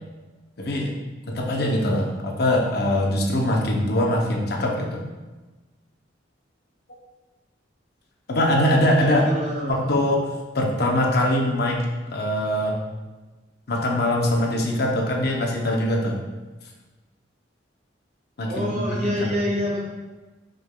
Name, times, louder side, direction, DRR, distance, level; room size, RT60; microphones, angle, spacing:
voice 1, 0.6-0.9 1.3-5.0 8.3-9.2 9.7-10.3 10.5-11.8 12.1-12.8 13.7-16.2 18.4-19.5, left 1 dB, 55° left, 0 dB, 0.7 m, -22 dB
voice 2, 8.9-9.8 18.5-19.9, equal, 35° right, -4 dB, 0.6 m, -27 dB
5.1 x 3.6 x 2.2 m, 1.2 s
head